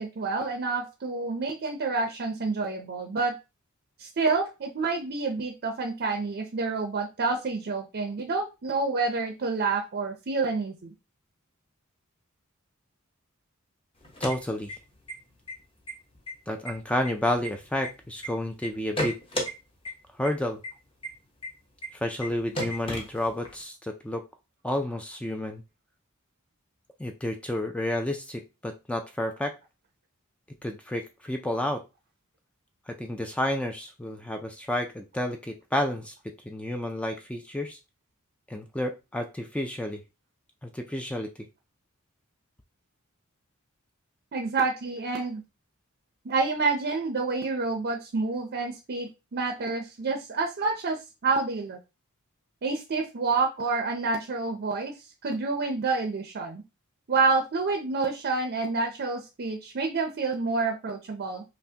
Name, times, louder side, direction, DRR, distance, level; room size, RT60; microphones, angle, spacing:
voice 1, 0.0-3.3 4.0-10.9 44.3-45.4 46.2-51.8 52.6-55.0 55.2-56.6 57.1-61.4, right 4 dB, 50° right, 4 dB, 0.5 m, -28 dB
sound 1, 14.0-15.1 15.5-15.6 15.9-16.3 16.7-18.3 18.6-19.5 19.9-20.0 20.2-20.3 20.6-20.7 21.0-21.1 21.4-21.5 21.8-21.9 22.2-22.3 22.6-23.6, equal, 25° left, 0.9 m, -33 dB
voice 2, 14.2-14.7 16.5-19.2 20.2-20.6 21.9-24.2 24.6-25.6 27.0-29.5 30.6-31.8 32.9-36.1 36.4-37.8 38.5-40.0 40.6-41.3, left 1 dB, 5° left, 4 dB, 0.3 m, -30 dB
5.5 x 2.1 x 2.7 m, 0.27 s
head